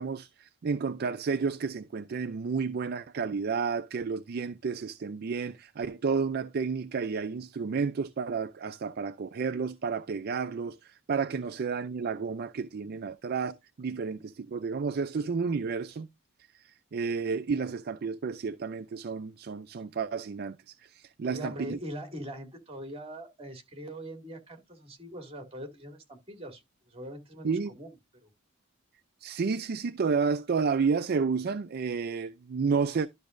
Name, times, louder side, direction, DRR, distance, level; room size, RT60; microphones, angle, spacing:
voice 1, 0.0-16.1 16.6-21.8 27.4-27.7 29.2-33.1, right 5 dB, 50° right, 0.4 m, -31 dB
voice 2, 21.2-27.9 28.2-28.3, equal, 30° right, 2.2 m, -42 dB
12.0 x 5.9 x 2.6 m
head